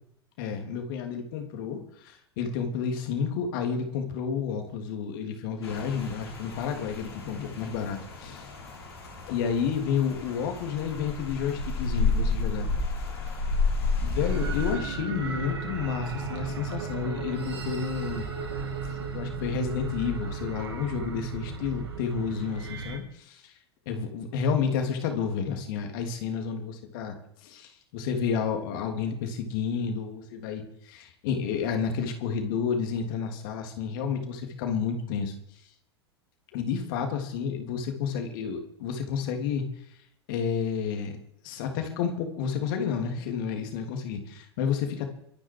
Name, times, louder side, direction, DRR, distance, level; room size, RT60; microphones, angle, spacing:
voice 1, 0.4-8.5 9.3-12.7 14.0-18.3 18.8-23.5 23.8-27.2 27.4-35.3 36.5-39.6 40.3-41.1 41.4-45.1, left 6 dB, 55° left, 4 dB, 3.4 m, -30 dB
Rain, 5.6-14.7, left 3 dB, 75° left, 5.6 m, -31 dB
sound 1, 14.2-23.0, right 4 dB, 70° right, 3.4 m, -35 dB
24.0 x 10.0 x 5.0 m, 0.74 s
figure-of-eight pair, 85°, 14 cm